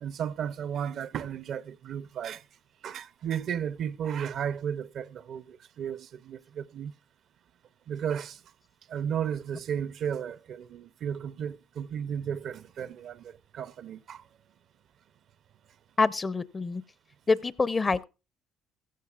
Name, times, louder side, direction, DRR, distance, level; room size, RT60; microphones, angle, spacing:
voice 1, 0.0-2.4 2.8-6.9 7.9-8.4 8.9-14.2, right 8 dB, 60° right, 0.5 m, -34 dB
voice 2, 16.0-16.8 17.3-18.0, left 4 dB, 30° left, 0.6 m, -26 dB
15.0 x 14.5 x 2.4 m
supercardioid pair, 70°, 0 cm